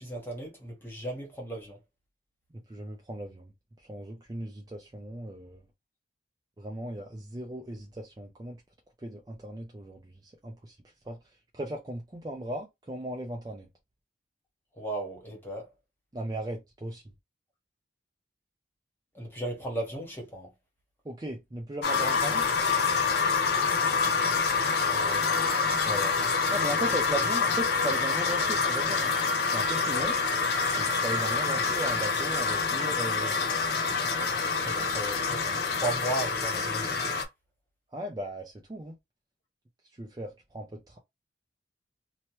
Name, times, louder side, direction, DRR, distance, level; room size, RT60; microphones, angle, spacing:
voice 1, 0.0-1.8 14.7-15.7 19.1-20.5 24.8-25.7 34.6-37.1, right 1 dB, 10° left, 1.1 m, -36 dB
voice 2, 2.7-3.5 3.8-5.6 6.6-8.6 9.0-10.8 11.0-11.2 11.5-13.7 16.1-17.0 21.0-22.5 25.8-26.2 26.5-29.1 29.5-30.2 30.7-33.4 37.9-39.0 39.9-41.0, right 1 dB, 20° right, 0.4 m, -37 dB
sound 1, 21.8-37.2, left 4 dB, 55° left, 0.5 m, -27 dB
2.9 x 2.2 x 2.9 m
head